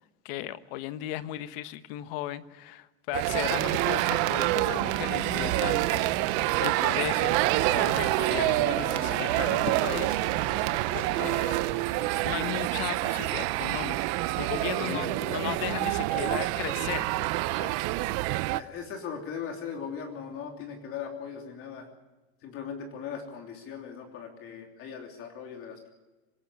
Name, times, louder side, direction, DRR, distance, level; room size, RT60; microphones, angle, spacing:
voice 1, 0.2-6.2 6.6-10.7 10.9-11.5 12.2-17.7 18.0-18.3, left 14 dB, 55° left, 13 dB, 1.3 m, -36 dB
sound 1, 3.1-18.6, right 19 dB, 50° right, 0.8 m, -27 dB
sound 2, 3.2-11.7, right 14 dB, 75° right, 1.6 m, -35 dB
Human voice, 3.3-12.1, left 5 dB, 80° left, 3.8 m, -43 dB
voice 2, 14.8-15.7 18.5-21.9 22.4-25.9, left 7 dB, 40° left, 3 dB, 3.2 m, -39 dB
25.5 x 13.0 x 10.0 m, 1.1 s
supercardioid pair, 140°, 33 cm